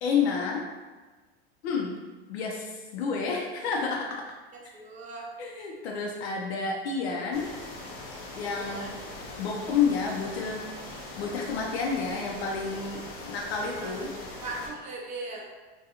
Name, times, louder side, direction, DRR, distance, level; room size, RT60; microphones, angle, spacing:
voice 1, 0.0-0.6 1.6-1.9 2.3-4.2 5.4-7.5 8.4-8.9 9.4-10.7 11.2-14.1, left 5 dB, 90° left, -1 dB, 0.5 m, -30 dB
voice 2, 4.5-5.3 8.5-9.0 13.8-14.1 14.4-15.4, right 2 dB, 25° right, -1 dB, 0.4 m, -39 dB
sound 1, 7.3-14.7, left 2 dB, 40° left, 0.7 m, -41 dB
2.5 x 2.3 x 2.8 m, 1.3 s
supercardioid pair, 125°, 31 cm